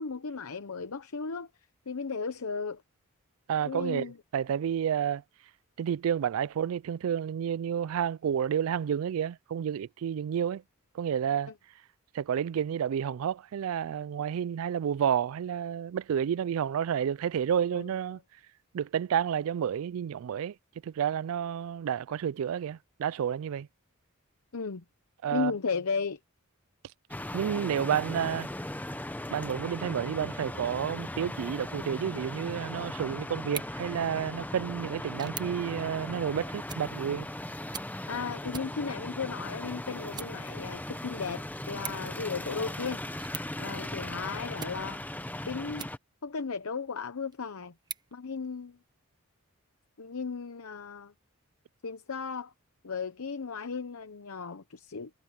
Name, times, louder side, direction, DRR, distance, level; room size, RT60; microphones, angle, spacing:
voice 1, 0.0-1.5 1.9-2.8 3.6-4.2 17.7-17.9 24.5-24.8 25.3-26.2 38.1-43.0 43.6-45.0 45.5-45.9 46.2-47.7 48.1-48.8 50.0-51.1 51.8-52.5 52.8-55.1, left 5 dB, 75° left, 0.8 m, -35 dB
voice 2, 3.5-5.2 5.8-10.6 10.9-11.5 12.1-18.2 18.7-20.5 20.8-23.7 25.2-25.5 27.3-28.5 29.3-37.3, right 8 dB, 65° right, 0.3 m, -30 dB
sound 1, 27.1-46.0, left 1 dB, 10° left, 0.8 m, -38 dB
sound 2, 45.2-46.4 46.9-48.9, right 6 dB, 20° right, 1.1 m, -48 dB
head